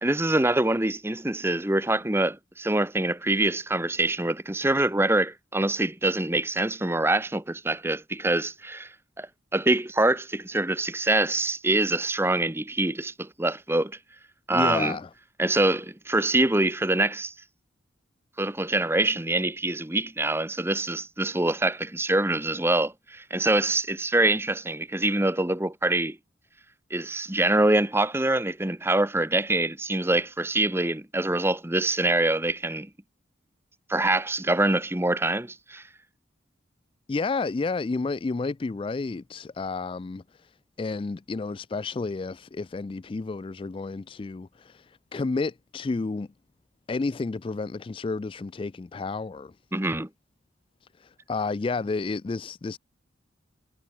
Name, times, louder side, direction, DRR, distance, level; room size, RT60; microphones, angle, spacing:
voice 1, 0.0-8.9 9.2-14.0 14.5-15.0 15.4-17.3 18.4-26.2 26.9-32.9 33.9-35.8 49.7-50.1, right 2 dB, 15° right, 1.1 m, -25 dB
voice 2, 14.5-15.1 37.1-40.5 40.8-46.3 46.9-49.5 51.0-52.8, left 3 dB, 25° left, 0.3 m, -31 dB
head